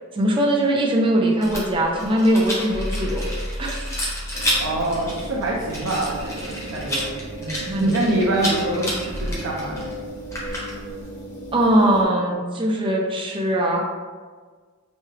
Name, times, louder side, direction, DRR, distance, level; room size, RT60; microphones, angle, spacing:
voice 1, 0.1-3.3 3.6-3.8 7.4-7.9 11.5-13.8, right 1 dB, 25° right, -1 dB, 0.5 m, -21 dB
Rattle, 1.4-11.0, equal, 15° left, 0.7 m, -31 dB
sound 1, 2.7-7.3 9.1-9.3, equal, 50° right, 1.3 m, -33 dB
sound 2, 4.3-12.1, right 2 dB, 55° left, 1.2 m, -36 dB
voice 2, 4.6-7.1 7.8-9.9, right 1 dB, 80° right, -4 dB, 0.5 m, -25 dB
3.0 x 2.3 x 3.1 m, 1.5 s
head